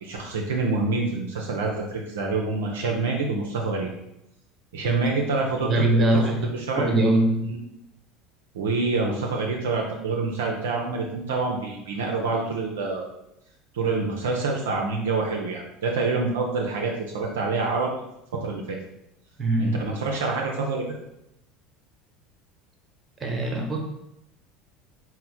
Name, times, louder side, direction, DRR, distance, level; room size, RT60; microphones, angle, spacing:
voice 1, 0.0-3.9 4.7-6.2 6.5-6.9 7.4-7.6 8.5-13.1 13.7-17.9 18.3-18.8 19.6-20.9, right 3 dB, 70° right, 0 dB, 0.4 m, -27 dB
voice 2, 5.6-6.5 6.7-7.6 19.4-19.9 23.2-23.8, right 1 dB, 25° right, 1 dB, 0.9 m, -22 dB
4.2 x 2.0 x 4.2 m, 0.84 s
figure-of-eight pair, 70°, 0 cm